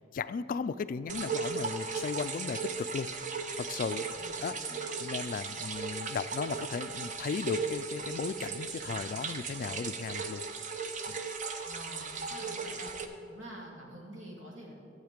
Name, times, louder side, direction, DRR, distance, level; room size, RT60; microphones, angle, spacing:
voice 1, 0.0-3.1 3.6-4.1 4.4-4.6 5.0-10.4 11.1-11.2, left 5 dB, 45° left, 14 dB, 0.3 m, -36 dB
sound 1, 1.1-13.1, right 5 dB, 40° right, 0.7 m, -37 dB
voice 2, 4.1-4.8 11.6-12.9 13.3-14.7, right 1 dB, 90° right, -2 dB, 2.3 m, -47 dB
12.5 x 8.0 x 5.1 m, 2.6 s
head